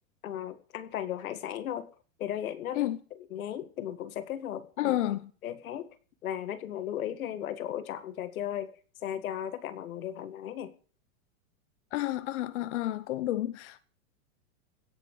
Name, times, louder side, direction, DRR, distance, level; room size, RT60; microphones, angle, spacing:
voice 1, 0.2-1.9 2.2-5.0 5.4-5.9 6.2-8.7 9.0-10.7, left 10 dB, 90° left, 1.8 m, -36 dB
voice 2, 4.8-5.3 11.9-13.8, left 14 dB, 60° left, 0.9 m, -30 dB
16.5 x 8.6 x 6.4 m
supercardioid pair, 170°, 41 cm